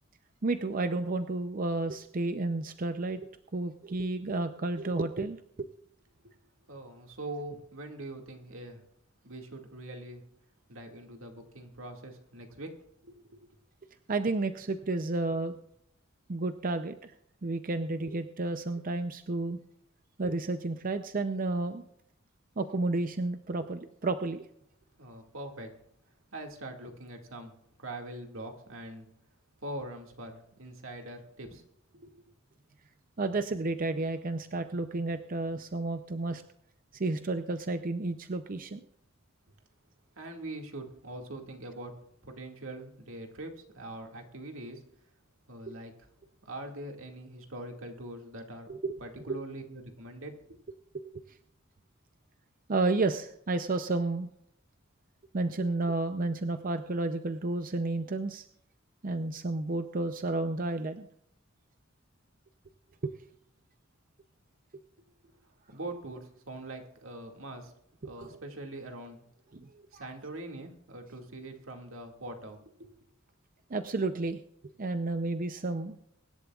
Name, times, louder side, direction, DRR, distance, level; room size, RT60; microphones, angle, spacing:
voice 1, 0.4-5.7 14.1-15.6 16.3-17.1 17.4-19.6 20.2-21.8 22.6-24.5 33.2-36.4 36.9-38.9 48.7-49.0 50.9-51.1 52.7-54.3 55.3-58.4 59.0-61.1 63.0-63.1 68.0-68.4 69.5-70.0 73.7-74.4 74.8-75.9, right 2 dB, 45° right, 8 dB, 0.6 m, -31 dB
voice 2, 6.7-8.8 9.2-10.2 10.7-12.7 13.0-13.4 25.0-25.7 26.3-27.5 27.8-29.1 29.6-31.6 31.9-32.1 40.2-44.8 45.5-45.9 46.4-48.7 49.0-50.6 65.7-67.7 68.0-69.2 69.9-72.9, right 1 dB, 85° right, 3 dB, 2.2 m, -43 dB
24.0 x 11.5 x 2.4 m, 0.75 s
head